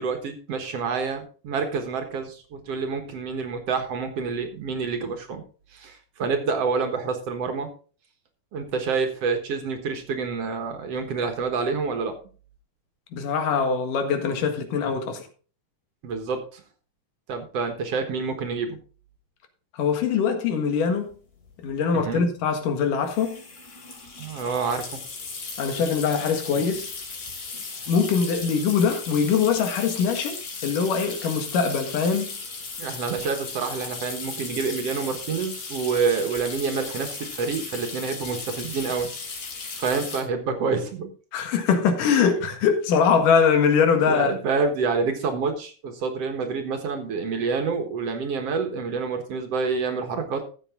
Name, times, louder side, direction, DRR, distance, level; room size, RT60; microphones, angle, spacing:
voice 1, 0.0-5.4 5.7-7.7 8.5-12.2 16.0-16.6 17.3-18.8 21.9-22.2 24.2-25.0 27.5-27.6 32.8-39.1 39.8-41.1 44.1-50.4, right 5 dB, 55° right, 2.2 m, -28 dB
voice 2, 13.1-15.3 19.8-21.1 21.6-23.4 25.6-26.9 27.9-32.4 41.3-44.3, left 6 dB, 90° left, 3.2 m, -22 dB
sound 1, 21.1-21.2 21.4-21.7 23.0-40.2, left 4 dB, 65° left, 4.4 m, -36 dB
14.0 x 7.9 x 3.7 m
omnidirectional pair, 3.6 m